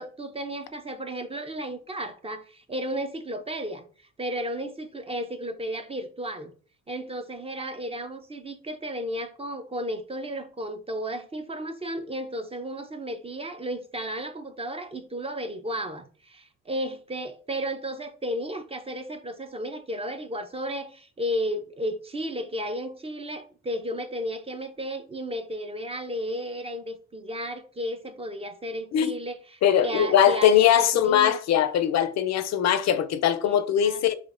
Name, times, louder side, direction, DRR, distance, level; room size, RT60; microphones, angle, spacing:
voice 1, 0.0-3.8 4.2-6.5 6.9-31.4 33.4-34.1, equal, 20° right, 0.5 m, -33 dB
voice 2, 29.6-34.1, left 9 dB, 60° left, 0.5 m, -21 dB
5.0 x 2.5 x 2.4 m
cardioid pair, 90°, 30 cm